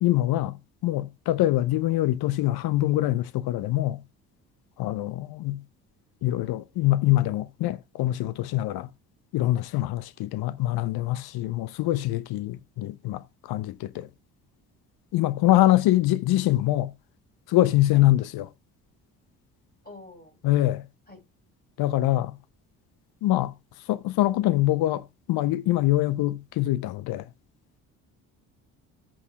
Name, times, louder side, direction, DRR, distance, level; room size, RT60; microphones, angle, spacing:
voice 1, 0.0-0.6 0.8-4.0 4.8-5.6 6.2-8.9 9.3-14.1 15.1-16.9 17.5-18.5 20.4-20.8 21.8-22.4 23.2-23.5 23.9-27.3, left 15 dB, 55° left, 0.8 m, -24 dB
voice 2, 19.8-20.4 21.1-21.2, left 3 dB, 20° left, 5.9 m, -47 dB
13.5 x 8.1 x 2.4 m
hypercardioid pair, 50°, 45 cm